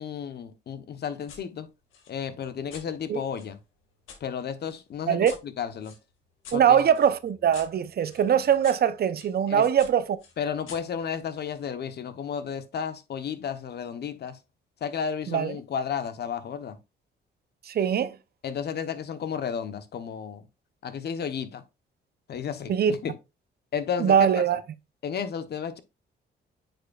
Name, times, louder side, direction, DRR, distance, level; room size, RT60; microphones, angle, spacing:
voice 1, 0.0-1.7 2.1-3.6 4.2-5.9 6.5-6.9 9.5-9.6 10.4-14.4 14.8-16.8 18.4-20.4 20.8-21.6 22.3-23.1 23.7-24.4 25.0-25.8, left 7 dB, 55° left, 1.0 m, -33 dB
sound 1, 1.3-1.4 1.9-4.2 4.7-9.3 9.8-11.7, left 6 dB, 90° left, 2.0 m, -49 dB
voice 2, 6.5-10.0 15.3-15.5 17.7-18.1 22.7-23.0 24.0-24.6, right 8 dB, 50° right, 0.7 m, -22 dB
8.9 x 5.3 x 2.4 m
cardioid pair, 90°, 20 cm